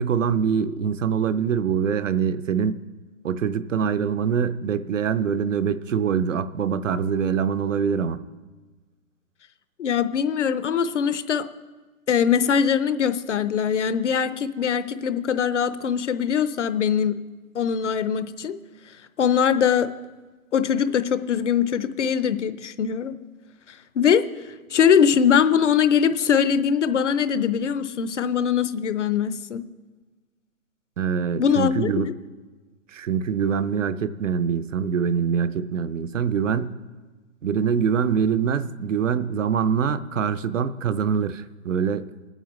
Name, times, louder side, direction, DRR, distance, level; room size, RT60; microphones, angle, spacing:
voice 1, 0.0-2.8 3.2-8.2 31.0-32.1 32.9-36.7 37.4-42.1, right 7 dB, 65° right, 12 dB, 0.7 m, -24 dB
voice 2, 9.8-11.5 12.1-17.2 17.5-18.6 19.2-19.9 20.5-23.1 24.0-24.2 24.7-29.6 31.4-32.1, left 7 dB, 60° left, 12 dB, 0.7 m, -22 dB
21.5 x 9.1 x 3.1 m, 1.3 s
hypercardioid pair, 170°, 42 cm